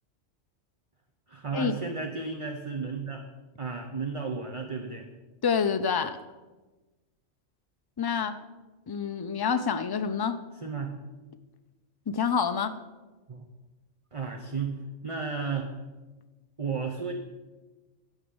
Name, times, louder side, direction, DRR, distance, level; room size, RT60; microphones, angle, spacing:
voice 1, 1.3-3.3 3.6-5.1 10.6-11.0 13.3-13.4 14.1-15.7 16.6-17.1, right 5 dB, 30° right, 3 dB, 0.8 m, -33 dB
voice 2, 5.4-6.2 8.0-8.4 8.9-10.4 12.1-12.8, left 6 dB, 35° left, 9 dB, 0.4 m, -27 dB
12.0 x 5.6 x 7.9 m, 1.2 s
omnidirectional pair, 1.2 m